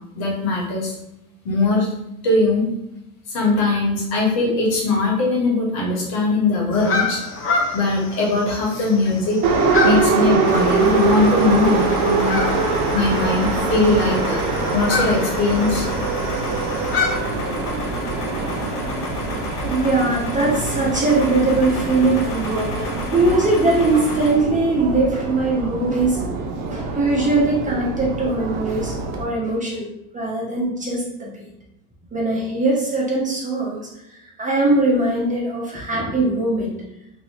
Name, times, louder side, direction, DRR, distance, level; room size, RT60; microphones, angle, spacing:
voice 1, 0.1-0.9 1.4-1.9 2.2-2.7 3.3-7.2 7.7-9.4 9.8-12.4 12.9-15.8, left 3 dB, 65° left, -3 dB, 1.5 m, -20 dB
sound 1, 6.7-17.1, left 4 dB, 30° left, 0.9 m, -28 dB
Subway metro underground, 9.4-29.2, right 4 dB, 45° right, 0.8 m, -24 dB
sound 2, 10.4-24.3, left 2 dB, 85° left, 0.9 m, -32 dB
voice 2, 19.6-22.7 23.1-26.3 26.7-28.9 29.2-29.8 30.1-31.4 32.1-33.8 34.4-36.7, right 2 dB, 15° right, -3 dB, 0.9 m, -20 dB
2.9 x 2.8 x 2.9 m, 0.87 s
hypercardioid pair, 80°, 45 cm